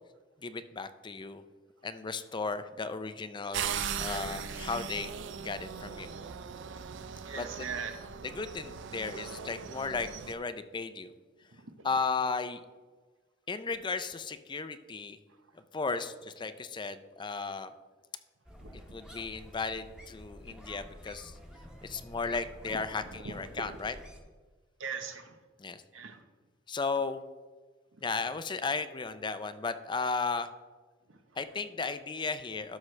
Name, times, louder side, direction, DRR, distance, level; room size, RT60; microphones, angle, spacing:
voice 1, 0.4-1.4 1.8-5.1 5.4-6.1 7.3-7.7 8.2-11.1 11.8-12.6 13.5-15.2 15.7-17.7 18.9-21.3 21.8-24.0 25.6-25.8 26.7-27.2 28.0-30.5 31.4-32.8, left 4 dB, 25° left, 0.4 m, -35 dB
sound 1, 3.5-10.3, right 7 dB, 65° right, 0.5 m, -39 dB
voice 2, 7.3-8.1 11.5-11.9 18.6-19.0 23.2-23.7 24.8-25.4 25.9-26.2 31.1-31.2, right 5 dB, 85° right, 0.9 m, -41 dB
sound 2, 18.5-24.2, equal, 5° right, 1.1 m, -50 dB
13.0 x 6.4 x 3.2 m
head